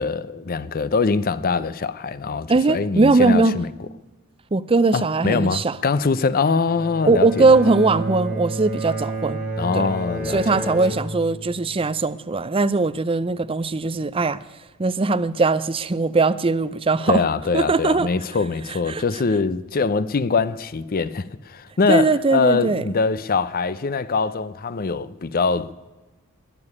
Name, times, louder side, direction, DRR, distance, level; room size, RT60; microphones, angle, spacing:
voice 1, 0.0-3.7 4.9-7.6 9.6-10.8 17.1-25.7, left 4 dB, 40° left, 0.5 m, -23 dB
voice 2, 2.5-3.6 4.5-5.8 7.1-9.4 9.7-9.9 10.3-14.4 14.8-17.2 17.5-18.1 18.9-19.0 21.9-22.9, right 3 dB, 25° right, 0.5 m, -20 dB
Bowed string instrument, 6.6-11.9, right 1 dB, 5° right, 4.0 m, -30 dB
20.5 x 7.0 x 9.7 m
head